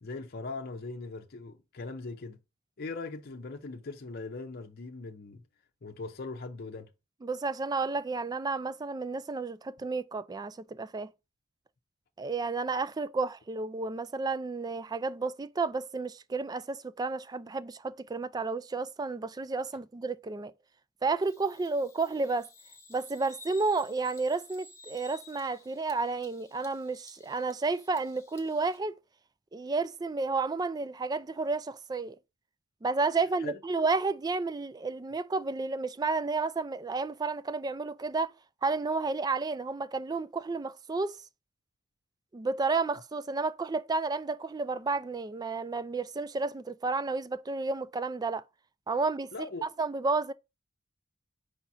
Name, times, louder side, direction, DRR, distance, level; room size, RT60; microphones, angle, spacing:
voice 1, 0.0-2.4 2.8-5.4 5.8-6.9 33.4-33.6 49.3-49.6, left 3 dB, 50° left, 0.7 m, -40 dB
voice 2, 7.2-11.1 12.2-20.5 21.0-22.5 22.9-29.0 29.5-32.2 32.8-38.3 38.6-41.2 42.3-48.4 48.9-50.3, right 3 dB, 20° right, 0.3 m, -31 dB
Bird vocalization bird call bird song, 21.2-28.8, left 3 dB, 15° left, 1.0 m, -55 dB
5.0 x 4.2 x 6.0 m
head